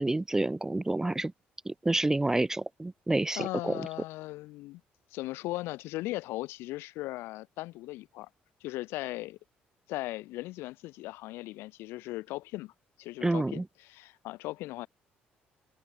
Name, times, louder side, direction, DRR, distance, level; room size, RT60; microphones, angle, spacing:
voice 1, 0.0-1.3 1.7-3.7 13.2-13.6, right 2 dB, 15° right, 0.3 m, -28 dB
voice 2, 3.4-4.8 5.1-8.3 8.6-9.4 9.9-12.7 13.0-14.9, left 19 dB, 85° left, 2.2 m, -38 dB
supercardioid pair, 80°, 4 cm